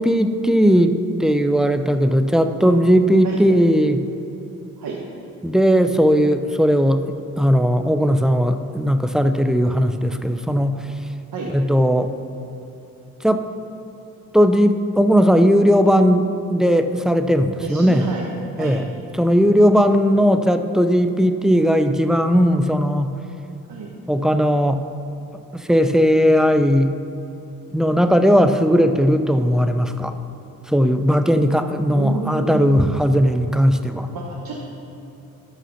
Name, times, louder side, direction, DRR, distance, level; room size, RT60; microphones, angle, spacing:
voice 1, 0.0-4.1 5.4-10.8 11.5-12.1 13.2-13.5 14.3-18.1 18.6-18.9 19.2-23.1 24.1-24.8 25.5-26.9 27.7-30.2 30.7-34.1, equal, ahead, 8 dB, 0.6 m, -17 dB
voice 2, 17.6-18.3 18.6-18.8 23.7-23.9 31.9-33.0 34.1-34.6, right 3 dB, 65° right, -3 dB, 1.4 m, -29 dB
13.0 x 5.7 x 5.7 m, 2.8 s
supercardioid pair, 55°, 36 cm